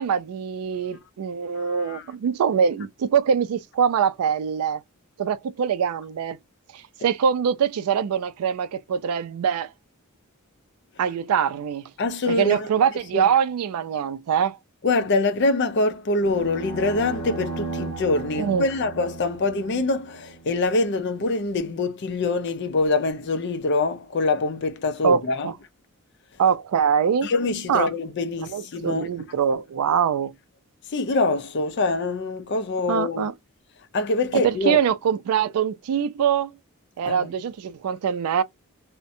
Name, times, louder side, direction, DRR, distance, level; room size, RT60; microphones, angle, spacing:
voice 1, 0.0-4.8 5.2-6.4 6.7-9.7 11.0-11.9 12.3-14.6 18.4-18.7 25.0-25.5 26.4-27.3 27.7-27.9 28.4-30.3 32.9-33.3 34.3-36.5 37.0-38.4, right 7 dB, 90° right, 0.3 m, -23 dB
voice 2, 1.6-2.0 12.0-12.7 13.1-13.3 14.8-25.5 27.2-29.1 30.9-33.3 33.9-34.8 37.0-37.3, left 3 dB, 50° left, 0.4 m, -24 dB
sound 1, 16.2-20.5, right 3 dB, 35° left, 1.1 m, -35 dB
2.6 x 2.1 x 2.5 m
head